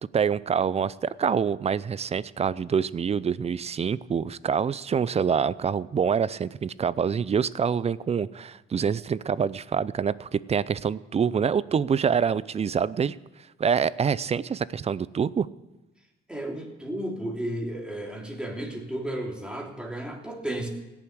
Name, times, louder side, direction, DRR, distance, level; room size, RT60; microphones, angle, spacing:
voice 1, 0.1-13.2 13.6-15.5, right 7 dB, 30° right, 19 dB, 0.5 m, -26 dB
voice 2, 16.3-20.7, right 1 dB, 5° right, 0 dB, 3.2 m, -33 dB
16.5 x 7.2 x 9.7 m, 1.1 s
cardioid pair, 90°, 20 cm